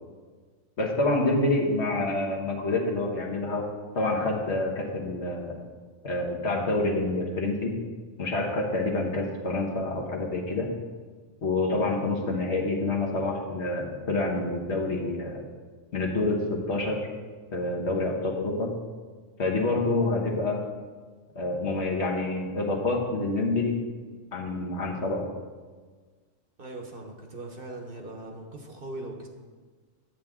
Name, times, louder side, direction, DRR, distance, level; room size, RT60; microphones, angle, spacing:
voice 1, 0.8-3.7 3.9-5.5 6.0-7.7 8.2-10.7 11.4-15.4 15.9-17.1 17.5-18.7 19.4-20.6 21.3-23.9 24.3-25.3, left 2 dB, 60° left, 0 dB, 1.5 m, -27 dB
voice 2, 26.6-29.3, right 2 dB, 50° right, 3 dB, 1.0 m, -40 dB
10.5 x 7.9 x 3.6 m, 1.5 s
omnidirectional pair, 1.3 m